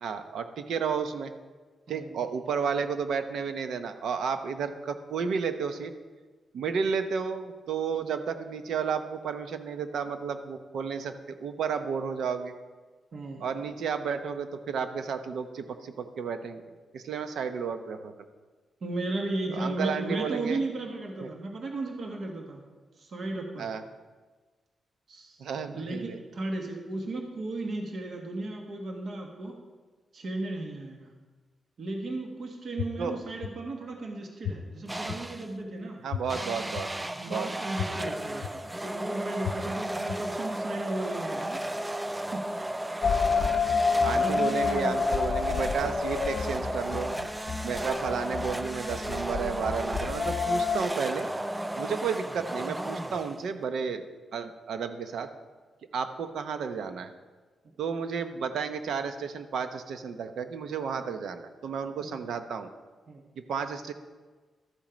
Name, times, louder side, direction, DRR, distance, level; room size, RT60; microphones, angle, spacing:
voice 1, 0.0-1.3 1.9-5.9 6.5-12.5 13.4-16.6 16.9-18.1 19.5-20.6 21.2-21.3 23.6-23.8 25.4-26.2 33.0-33.2 36.0-36.9 37.3-37.5 43.5-43.8 44.0-47.2 47.6-51.3 51.8-54.0 54.3-55.3 55.9-57.1 57.8-62.7 63.4-63.9, right 6 dB, 75° right, 9 dB, 0.8 m, -32 dB
voice 2, 1.9-2.2 13.1-13.5 18.8-22.6 23.0-23.7 25.1-25.5 25.7-29.6 30.1-31.1 31.8-36.0 37.2-41.6 42.1-42.5 43.3-43.8 44.1-45.1 57.6-57.7 62.0-62.1 63.1-63.2, right 2 dB, 50° right, 2 dB, 1.3 m, -35 dB
sound 1, 32.8-32.9 33.4-33.5 34.4-34.5 35.1-35.2 36.1-36.2 36.8-36.9 37.8-37.9 38.4-38.5 39.4-39.5 40.1-40.2, left 11 dB, 80° left, 0.6 m, -31 dB
sound 2, 34.9-35.6 36.3-53.6, right 1 dB, 10° right, 0.3 m, -34 dB
sound 3, 43.0-50.8, left 5 dB, 45° left, 0.8 m, -29 dB
13.0 x 7.4 x 5.1 m, 1.3 s
wide cardioid pair, 155°, 0 cm